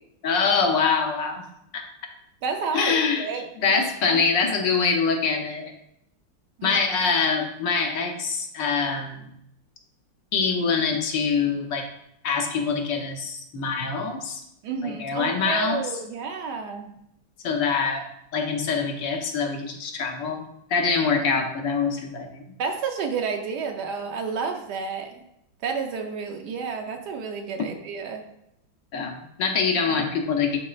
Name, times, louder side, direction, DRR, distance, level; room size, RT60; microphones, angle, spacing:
voice 1, 0.2-1.4 1.7-1.8 2.7-3.3 3.6-5.7 6.6-9.2 10.3-11.9 12.2-14.4 14.8-15.8 17.4-18.1 18.3-20.4 20.7-22.4 28.9-30.6, left 5 dB, 75° left, 2 dB, 1.5 m, -24 dB
voice 2, 2.4-3.7 4.0-4.2 6.6-6.8 14.6-16.9 22.6-25.2 25.6-28.2, right 5 dB, 70° right, 4 dB, 1.1 m, -31 dB
10.5 x 4.1 x 2.4 m, 0.78 s
omnidirectional pair, 2.0 m